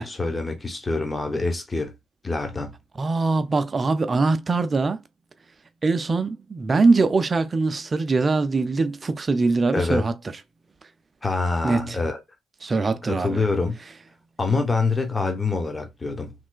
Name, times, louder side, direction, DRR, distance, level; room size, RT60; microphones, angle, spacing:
voice 1, 0.0-1.9 2.2-2.7 9.7-10.0 11.2-12.2 13.1-13.8 14.4-16.3, left 3 dB, 20° left, 0.8 m, -25 dB
voice 2, 3.0-5.0 5.8-10.1 11.6-12.0 12.6-13.4, right 3 dB, 30° right, 0.5 m, -22 dB
3.1 x 3.0 x 2.3 m
figure-of-eight pair, 45°, 0 cm